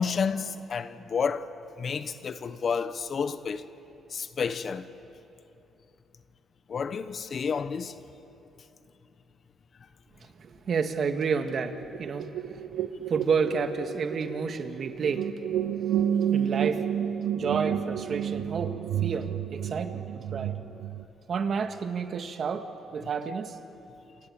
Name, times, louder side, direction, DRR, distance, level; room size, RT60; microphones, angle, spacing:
voice 1, 0.0-1.5 1.8-3.7 4.1-4.9 6.7-8.0, left 6 dB, 50° left, 1.1 m, -30 dB
voice 2, 10.4-12.3 13.1-15.4 16.3-16.9 17.4-20.6 21.3-23.6, right 5 dB, 55° right, 1.9 m, -30 dB
sound 1, 11.5-21.0, right 9 dB, 80° right, 0.9 m, -31 dB
28.0 x 23.5 x 8.8 m
cardioid pair, 90°, 0 cm